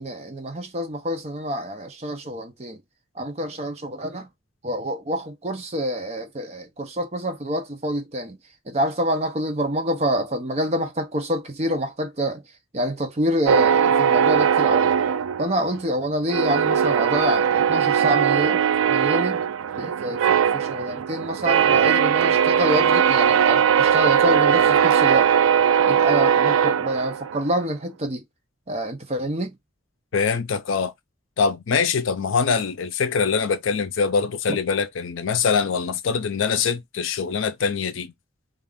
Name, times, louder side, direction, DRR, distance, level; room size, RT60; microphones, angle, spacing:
voice 1, 0.0-2.8 3.1-4.3 4.6-8.4 8.7-12.4 12.7-14.9 15.4-18.6 18.9-19.4 19.8-25.3 25.9-28.2 28.7-29.6, equal, 30° right, 0.6 m, -27 dB
sound 1, 13.5-15.9 16.3-27.5, right 8 dB, 80° right, 0.3 m, -19 dB
voice 2, 30.1-30.9 31.4-38.1, left 5 dB, 70° left, 0.5 m, -23 dB
2.4 x 2.4 x 3.5 m
head